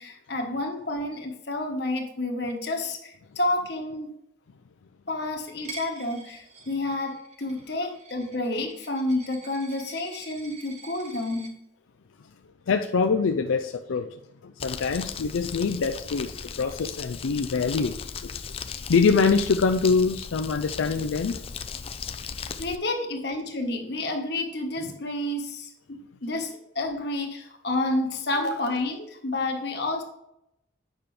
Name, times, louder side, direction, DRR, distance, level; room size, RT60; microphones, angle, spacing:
voice 1, 0.0-4.1 5.1-11.5 22.6-30.0, left 2 dB, 55° left, 1.3 m, -30 dB
Coin (dropping), 5.6-11.5, right 4 dB, 35° right, 1.3 m, -46 dB
voice 2, 12.7-18.0 18.2-18.6 18.9-21.4, left 5 dB, 85° left, 0.5 m, -24 dB
Crumpling crinkling, 14.6-22.8, left 6 dB, 30° left, 0.4 m, -37 dB
8.9 x 5.9 x 3.3 m
head